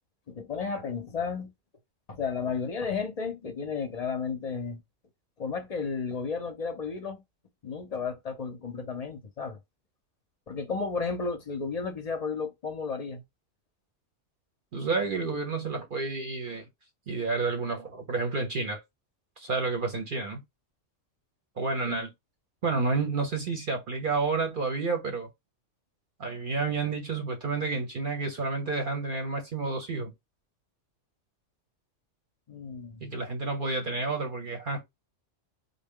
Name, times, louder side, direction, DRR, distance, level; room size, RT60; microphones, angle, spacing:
voice 1, 0.3-1.5 2.1-4.8 5.4-7.2 7.6-9.6 10.5-13.2 21.8-22.0 32.5-33.1, left 5 dB, 45° left, 0.5 m, -33 dB
voice 2, 14.7-16.7 17.1-18.8 19.4-20.4 21.6-22.1 22.6-25.3 26.2-30.1 33.0-34.8, right 4 dB, 50° right, 0.7 m, -30 dB
3.7 x 2.1 x 3.6 m
omnidirectional pair, 1.3 m